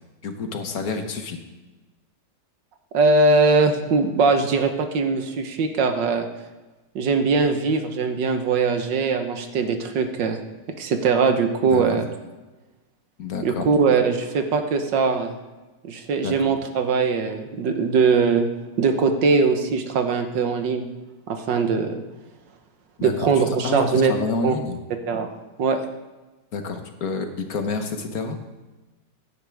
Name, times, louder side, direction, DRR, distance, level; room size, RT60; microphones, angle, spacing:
voice 1, 0.2-1.4 11.6-12.0 13.2-13.7 16.2-16.5 23.0-24.8 26.5-28.4, left 4 dB, 60° left, 6 dB, 1.5 m, -29 dB
voice 2, 2.9-6.3 7.0-10.4 10.8-12.0 13.4-15.3 15.8-18.5 18.8-20.8 21.3-22.0 23.0-24.1 24.4-24.5 25.1-25.3 25.6-25.8, right 4 dB, 85° right, 6 dB, 1.8 m, -21 dB
16.0 x 10.5 x 3.5 m, 1.2 s
omnidirectional pair, 1.9 m